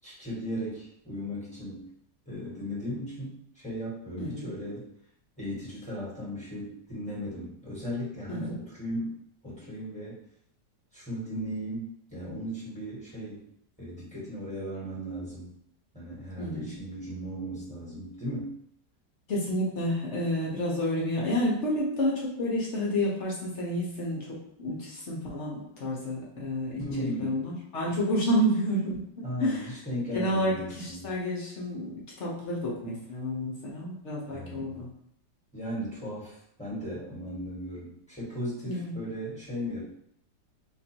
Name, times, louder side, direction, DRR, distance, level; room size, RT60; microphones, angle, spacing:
voice 1, 0.0-1.9 2.2-4.9 5.4-9.1 9.4-10.2 10.9-11.8 12.1-13.4 13.8-15.5 15.9-18.5 26.8-27.4 29.2-31.1 34.3-34.8 35.5-39.8, equal, 5° left, -8 dB, 1.3 m, -36 dB
voice 2, 4.2-4.5 8.3-8.6 16.4-16.7 19.3-29.0 29.4-29.7 30.1-34.9 38.6-38.9, equal, 50° left, -4 dB, 0.9 m, -30 dB
3.0 x 2.6 x 4.3 m, 0.72 s
omnidirectional pair, 2.0 m